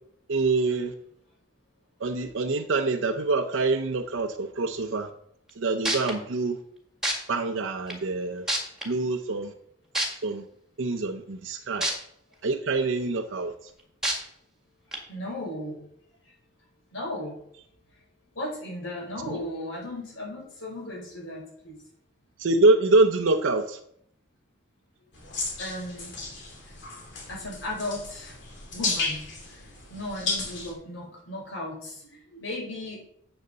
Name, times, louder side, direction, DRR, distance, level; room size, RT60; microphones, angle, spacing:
voice 1, 0.3-0.9 2.0-5.1 5.6-6.6 7.3-8.5 8.9-9.5 10.2-10.4 10.8-11.9 12.4-13.5 22.4-23.8, right 3 dB, 85° right, 4 dB, 0.7 m, -25 dB
sound 1, 5.5-5.6 5.8-6.1 7.0-7.1 7.9-8.0 8.5-8.8 9.9-10.1 11.8-11.9 12.4-12.5 14.0-14.1 14.9-15.0, right 1 dB, 5° right, 1.9 m, -25 dB
voice 2, 15.1-15.8 16.2-16.3 16.9-17.4 18.3-21.8 25.6-26.2 26.7-26.8 27.3-28.4 28.7-33.0, left 1 dB, 85° left, -2 dB, 4.8 m, -36 dB
sound 2, 25.1-30.7, left 3 dB, 65° left, 2.7 m, -34 dB
8.0 x 6.8 x 6.6 m, 0.70 s
head